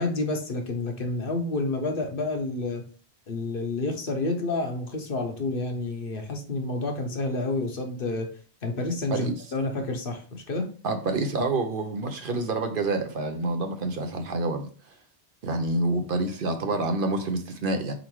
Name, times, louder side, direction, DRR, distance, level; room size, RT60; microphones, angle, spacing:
voice 1, 0.0-2.8 3.3-8.3 8.6-10.7, left 2 dB, 55° left, 1.0 m, -29 dB
voice 2, 10.8-14.9 15.4-17.9, right 2 dB, 60° right, 0.8 m, -28 dB
4.5 x 3.9 x 3.0 m
omnidirectional pair, 1.1 m